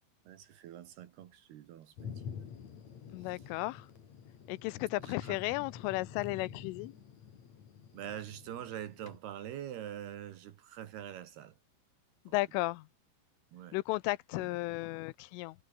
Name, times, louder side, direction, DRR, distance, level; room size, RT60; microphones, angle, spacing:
voice 1, 0.2-2.5 3.2-3.5 5.0-5.4 7.9-11.6 12.3-12.4 13.5-13.8 14.3-14.6, right 11 dB, 65° right, 2.9 m, -45 dB
Thunder, 2.0-9.2, left 7 dB, 45° left, 2.8 m, -48 dB
voice 2, 3.1-3.8 4.5-6.9 12.3-12.8 13.7-15.5, left 21 dB, 85° left, 3.2 m, -34 dB
omnidirectional pair, 5.9 m